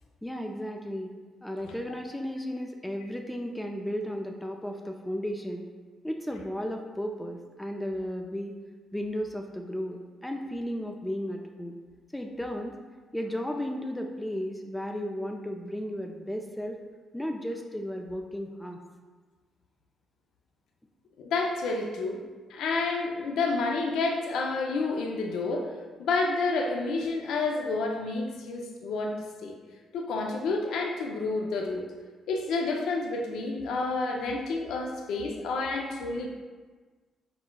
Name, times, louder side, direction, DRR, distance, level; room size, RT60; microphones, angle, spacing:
voice 1, 0.2-1.1 1.4-5.7 6.0-8.5 8.9-11.8 12.1-12.8 13.1-16.8 17.1-18.8, equal, 5° left, 3 dB, 0.3 m, -34 dB
voice 2, 21.2-22.2 22.5-25.7 26.0-29.6 29.9-31.8 32.3-36.3, left 3 dB, 80° left, 1 dB, 0.4 m, -29 dB
4.4 x 4.0 x 2.2 m, 1.4 s
cardioid pair, 90°, 0 cm